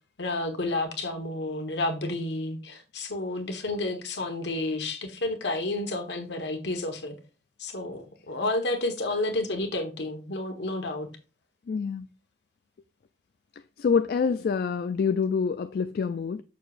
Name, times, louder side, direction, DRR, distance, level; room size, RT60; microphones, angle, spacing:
voice 1, 0.2-7.2 7.6-11.1, left 2 dB, 75° left, 1.3 m, -30 dB
voice 2, 11.7-12.1 13.8-16.4, left 5 dB, 55° left, 0.3 m, -26 dB
6.8 x 6.5 x 2.5 m
head